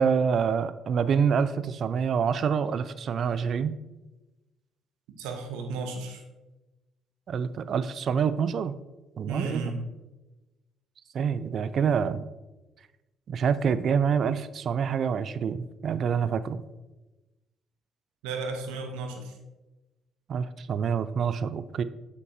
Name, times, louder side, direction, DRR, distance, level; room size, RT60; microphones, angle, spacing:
voice 1, 0.0-3.8 7.3-8.8 9.2-9.8 11.1-12.3 13.3-16.6 20.3-21.8, right 6 dB, 55° right, 14 dB, 0.3 m, -26 dB
voice 2, 5.2-6.2 9.3-9.8 18.2-19.4, right 3 dB, 85° right, 4 dB, 0.9 m, -34 dB
7.9 x 5.8 x 2.7 m, 1.1 s
hypercardioid pair, 60°, 0 cm